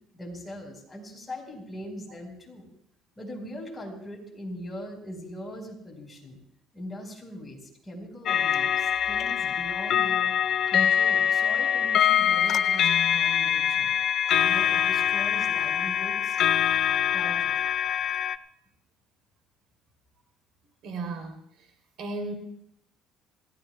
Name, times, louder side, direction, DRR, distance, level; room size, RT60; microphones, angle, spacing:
voice 1, 0.1-2.7 3.2-6.4 6.7-10.3 10.7-13.9 14.4-16.4 17.1-17.6, equal, 15° left, 0 dB, 5.0 m, -41 dB
sound 1, 8.3-18.4, left 9 dB, 50° left, 0.7 m, -24 dB
voice 2, 20.8-21.4 22.0-22.3, right 3 dB, 65° right, 4 dB, 3.4 m, -34 dB
28.0 x 17.0 x 2.4 m, 0.72 s
cardioid pair, 130°, 0 cm